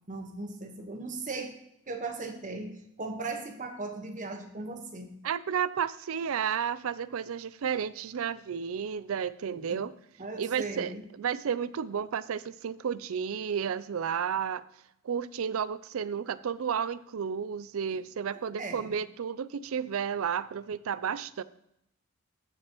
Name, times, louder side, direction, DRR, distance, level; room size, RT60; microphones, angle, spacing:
voice 1, 0.1-1.6 1.9-5.1 9.5-9.8 10.2-11.0 17.9-18.0 18.3-18.9, right 3 dB, 40° right, 5 dB, 1.2 m, -38 dB
voice 2, 5.2-9.9 10.4-14.6 15.0-21.4, right 7 dB, 75° right, 17 dB, 0.4 m, -32 dB
14.5 x 6.3 x 3.0 m, 0.79 s
head